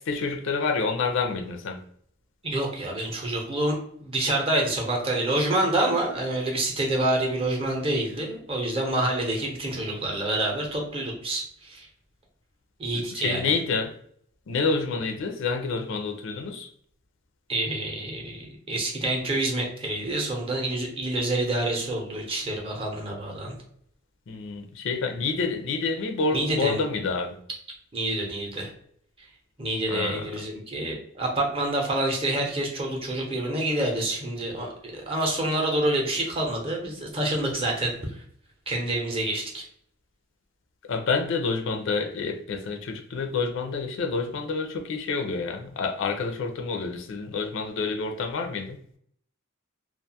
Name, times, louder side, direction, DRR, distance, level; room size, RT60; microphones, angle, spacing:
voice 1, 0.1-1.8 12.9-13.9 14.5-16.7 24.3-27.4 29.9-30.3 40.9-48.8, left 4 dB, 65° left, 5 dB, 0.4 m, -28 dB
voice 2, 2.4-11.8 12.8-13.5 17.5-23.5 26.3-26.8 27.9-28.7 29.6-34.7 35.1-37.9 38.7-39.6, right 1 dB, 25° right, 0 dB, 0.6 m, -27 dB
2.4 x 2.2 x 2.7 m, 0.64 s
head